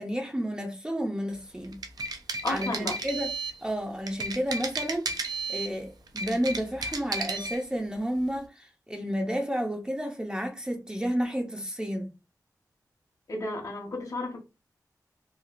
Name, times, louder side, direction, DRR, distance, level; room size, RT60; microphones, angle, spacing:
voice 1, 0.0-1.8 2.5-3.3 3.6-12.1, equal, 10° right, 0.6 m, -31 dB
sound 1, 1.6-3.6 4.1-5.7 6.1-7.6, right 3 dB, 70° right, 0.5 m, -33 dB
voice 2, 2.4-3.0 13.3-14.4, left 2 dB, 55° left, 1.1 m, -32 dB
3.1 x 2.4 x 2.4 m
wide cardioid pair, 95°, 7 cm